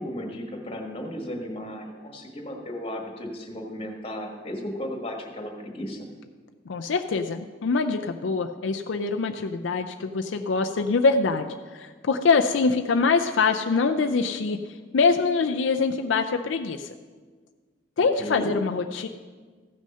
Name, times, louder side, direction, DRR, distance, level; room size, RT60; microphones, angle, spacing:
voice 1, 0.0-6.1 18.0-18.5, equal, 30° left, 2 dB, 1.5 m, -35 dB
voice 2, 6.7-16.9 18.0-19.1, left 4 dB, 75° left, 5 dB, 0.5 m, -24 dB
15.0 x 6.3 x 5.5 m, 1.5 s
head